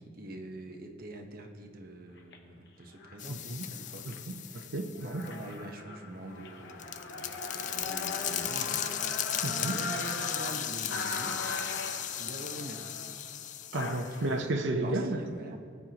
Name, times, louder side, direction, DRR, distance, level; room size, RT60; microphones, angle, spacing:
voice 1, 0.0-4.0 4.4-4.7 5.0-9.0 9.2-11.7 12.2-12.8 14.1-14.2 14.8-15.6, right 1 dB, 55° right, 2 dB, 1.1 m, -45 dB
sound 1, 2.2-2.4 3.0-3.3 3.7-4.2 4.6-4.7 5.0-14.4, left 3 dB, 65° left, 1.0 m, -39 dB
sound 2, 3.2-5.4 6.4-14.2, left 11 dB, 40° left, 0.4 m, -36 dB
voice 2, 3.3-3.6 4.1-5.2 9.4-9.8 13.7-15.2, right 2 dB, 80° right, 4 dB, 0.8 m, -33 dB
20.0 x 9.5 x 3.0 m, 2.3 s
head